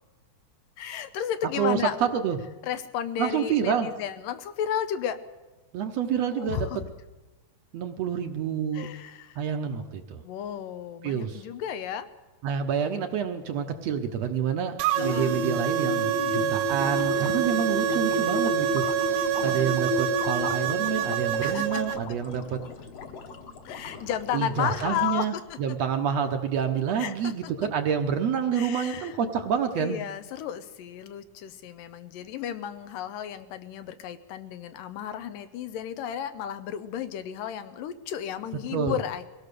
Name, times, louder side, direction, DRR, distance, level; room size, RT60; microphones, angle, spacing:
voice 1, 0.8-2.0 2.6-5.2 6.3-6.8 8.7-9.4 10.2-12.1 15.0-15.4 17.2-17.8 19.4-19.7 21.4-22.0 23.7-25.8 27.0-27.5 28.5-29.2 29.8-39.2, left 9 dB, 85° left, 11 dB, 2.6 m, -33 dB
voice 2, 1.6-2.4 3.2-3.9 5.7-6.7 7.7-8.9 9.4-10.2 11.0-11.4 12.4-14.7 15.0-19.1 19.4-22.6 24.3-30.0 38.7-39.0, right 7 dB, 65° right, 6 dB, 1.8 m, -28 dB
sound 1, 14.8-22.0, right 10 dB, 85° right, 2.5 m, -27 dB
sound 2, 14.9-21.2, equal, 35° left, 0.7 m, -31 dB
sound 3, 16.6-25.5, left 5 dB, 55° left, 2.3 m, -41 dB
22.5 x 17.0 x 6.8 m, 1.2 s
omnidirectional pair, 3.8 m